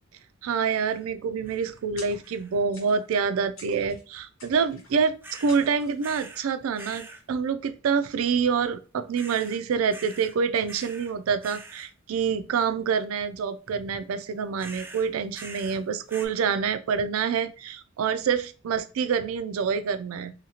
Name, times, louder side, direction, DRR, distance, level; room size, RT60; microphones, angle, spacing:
voice 1, 0.4-20.3, right 6 dB, 85° right, 11 dB, 0.4 m, -27 dB
sound 1, 0.7-1.1 1.5-1.9 2.2-2.7 5.2-5.7 6.0-6.5 6.8-7.2 9.1-9.6 9.9-10.4 10.7-11.1 11.4-11.9 14.6-15.8 16.1-16.3, right 3 dB, 10° right, 0.3 m, -44 dB
sound 2, 2.0-2.4 2.7-3.2 3.6-4.0 4.4-5.1 5.5-6.1, left 3 dB, 80° left, 1.2 m, -48 dB
2.8 x 2.8 x 2.8 m, 0.34 s
head